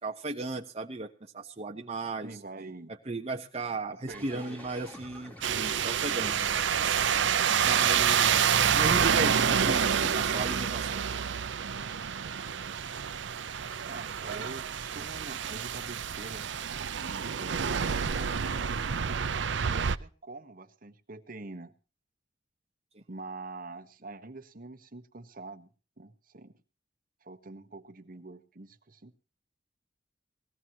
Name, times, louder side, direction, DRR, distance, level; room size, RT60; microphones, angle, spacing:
voice 1, 0.0-2.3 3.1-6.3 7.6-9.9 10.1-11.0, right 3 dB, 35° right, 1 dB, 1.0 m, -36 dB
voice 2, 2.2-2.9 4.1-4.6 13.8-18.3 19.6-21.7 23.1-25.7 26.0-26.5 27.2-29.1, right 3 dB, 50° right, 7 dB, 1.3 m, -45 dB
sound 1, 4.1-10.6, left 1 dB, 10° left, 3.4 m, -49 dB
sound 2, 5.4-20.0, right 7 dB, 75° right, 0.6 m, -28 dB
20.5 x 16.0 x 3.0 m, 0.35 s
head